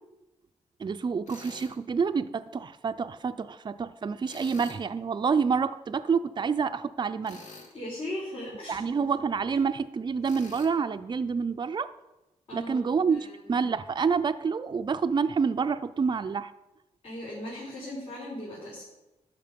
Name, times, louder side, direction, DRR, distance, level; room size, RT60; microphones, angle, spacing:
voice 1, 0.8-7.4 8.7-11.9 12.5-16.5, right 5 dB, 35° right, 10 dB, 0.5 m, -28 dB
Tools, 1.3-1.7 4.2-4.8 7.2-7.8 10.2-10.7, left 3 dB, 75° left, 2.0 m, -46 dB
voice 2, 7.7-8.9 9.5-9.6 12.5-13.7 17.0-18.8, left 1 dB, 55° left, -7 dB, 4.1 m, -38 dB
12.5 x 5.9 x 5.2 m, 0.99 s
cardioid pair, 100°, 13 cm